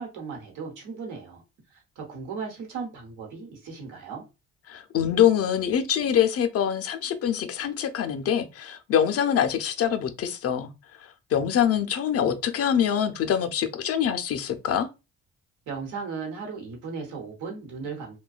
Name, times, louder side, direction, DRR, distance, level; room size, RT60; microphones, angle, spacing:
voice 1, 0.0-1.4 1.7-4.2 15.7-18.2, right 5 dB, 85° right, 1.0 m, -36 dB
voice 2, 4.7-10.7 11.3-14.9, left 9 dB, 50° left, 0.5 m, -24 dB
2.6 x 2.2 x 2.3 m
cardioid pair, 90°, 30 cm